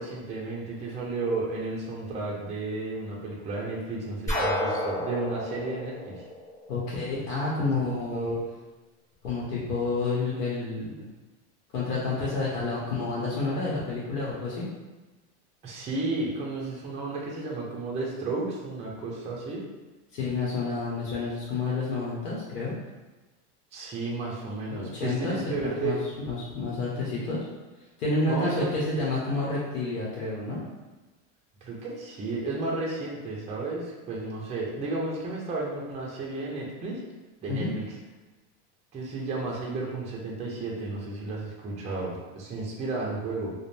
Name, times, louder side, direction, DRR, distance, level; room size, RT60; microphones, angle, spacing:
voice 1, 0.0-6.1 7.6-8.5 15.6-19.6 23.7-26.0 28.2-29.1 31.6-37.0 37.4-37.8 38.9-43.5, right 3 dB, 15° right, -3 dB, 0.4 m, -33 dB
sound 1, 4.3-7.1, left 1 dB, 5° left, 0.9 m, -30 dB
voice 2, 6.7-8.4 9.2-11.0 11.7-14.7 20.1-22.8 24.7-25.4 25.6-27.4 28.0-30.6 37.5-37.7, left 3 dB, 85° left, -6 dB, 0.9 m, -29 dB
2.5 x 2.1 x 3.2 m, 1.2 s
supercardioid pair, 125°, 45 cm